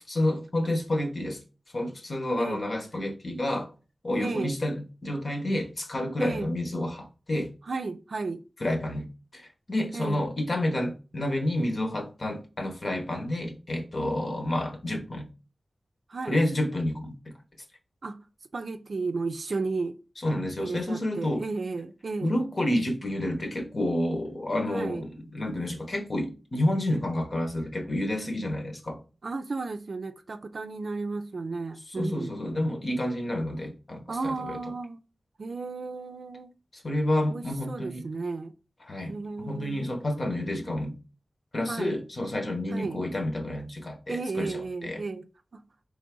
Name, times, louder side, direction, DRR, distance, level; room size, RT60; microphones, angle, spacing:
voice 1, 0.1-1.4 1.7-3.7 4.0-7.5 8.6-9.1 9.3-15.3 16.3-17.3 20.2-21.4 22.2-29.0 31.9-34.6 36.7-38.0 38.8-40.9 41.5-45.0, left 1 dB, 50° left, 1.1 m, -29 dB
voice 2, 4.2-4.6 6.2-6.5 7.7-8.4 9.9-10.2 16.1-16.4 18.0-18.2 18.5-20.0 20.6-22.3 24.7-25.0 29.2-32.3 34.1-35.0 35.4-36.5 37.3-38.5 39.0-39.9 41.7-42.0 42.7-43.0 44.1-45.3 45.5-45.6, right 3 dB, 65° right, 0.4 m, -33 dB
3.8 x 3.4 x 3.7 m
wide cardioid pair, 90°, 0 cm